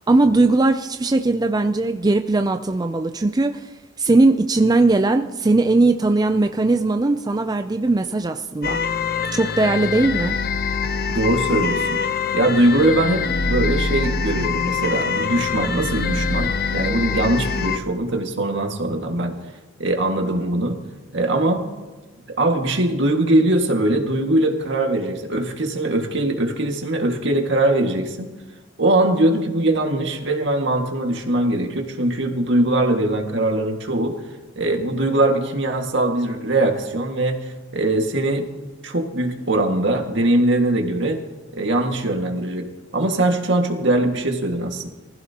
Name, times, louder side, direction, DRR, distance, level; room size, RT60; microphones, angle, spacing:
voice 1, 0.1-3.7 4.0-8.8 9.3-10.4, right 2 dB, 20° right, 7 dB, 0.4 m, -19 dB
sound 1, 8.6-17.8, left 5 dB, 50° left, 0.6 m, -24 dB
voice 2, 11.1-12.0 12.3-19.4 19.8-20.8 21.1-21.7 22.3-28.3 28.8-34.2 34.6-38.5 38.8-41.2 41.5-44.9, right 1 dB, 65° right, 3 dB, 2.0 m, -21 dB
23.5 x 15.5 x 2.9 m, 1.2 s
head